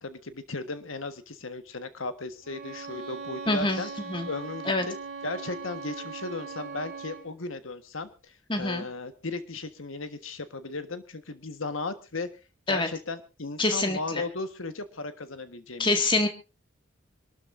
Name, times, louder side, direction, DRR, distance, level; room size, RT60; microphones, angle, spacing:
voice 1, 0.0-3.9 4.3-4.9 5.2-12.3 12.7-16.2, left 3 dB, 85° left, 10 dB, 1.5 m, -36 dB
Bowed string instrument, 2.4-7.3, right 5 dB, 40° right, 4.1 m, -40 dB
voice 2, 3.5-3.8 4.1-4.3 4.7-4.9 8.5-8.9 12.7-12.9 13.6-14.2 15.8-16.3, left 2 dB, 25° left, 6 dB, 2.0 m, -25 dB
26.5 x 12.5 x 2.6 m, 0.30 s
head